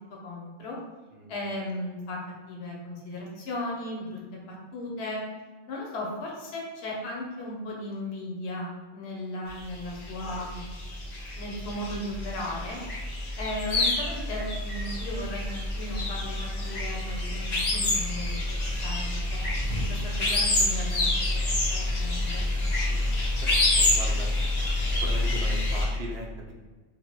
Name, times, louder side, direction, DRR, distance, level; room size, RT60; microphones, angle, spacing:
voice 1, 0.1-0.8 1.3-2.2 2.5-5.2 5.7-10.6 11.4-12.8 13.4-19.4 19.9-22.4 22.9-23.0, left 1 dB, 70° left, -2 dB, 0.9 m, -36 dB
voice 2, 1.1-1.4 22.8-24.3 24.9-26.5, right 2 dB, 70° right, -1 dB, 0.8 m, -40 dB
sound 1, 9.5-25.9, left 2 dB, 40° left, 0.8 m, -27 dB
3.0 x 2.1 x 3.0 m, 1.3 s
omnidirectional pair, 1.2 m